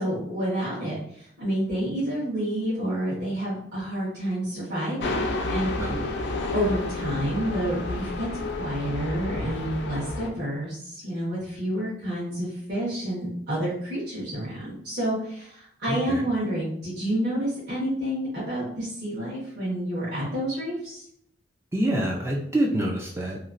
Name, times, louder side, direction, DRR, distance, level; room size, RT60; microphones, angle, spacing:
voice 1, 0.0-5.7 6.5-21.0, right 1 dB, 60° right, -11 dB, 1.3 m, -29 dB
sound 1, 5.0-10.3, left 2 dB, 60° left, 0.4 m, -30 dB
voice 2, 15.9-16.3 21.7-23.4, right 1 dB, 15° right, -2 dB, 0.3 m, -26 dB
3.0 x 2.4 x 2.5 m, 0.68 s
head